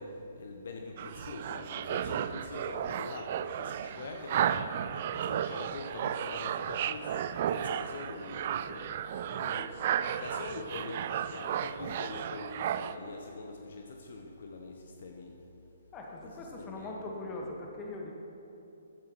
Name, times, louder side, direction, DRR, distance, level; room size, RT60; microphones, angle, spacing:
voice 1, 0.0-9.1 9.4-9.8 10.1-15.3 16.6-17.4, left 3 dB, 55° left, 2 dB, 0.9 m, -44 dB
sound 1, 1.0-13.0, right 9 dB, 40° right, 0.3 m, -34 dB
sound 2, 8.7-10.8, right 2 dB, 15° right, 1.0 m, -51 dB
voice 2, 9.1-9.4 15.9-18.1, left 2 dB, 20° left, 0 dB, 1.5 m, -42 dB
14.5 x 10.5 x 3.1 m, 2.9 s
figure-of-eight pair, 125°, 0 cm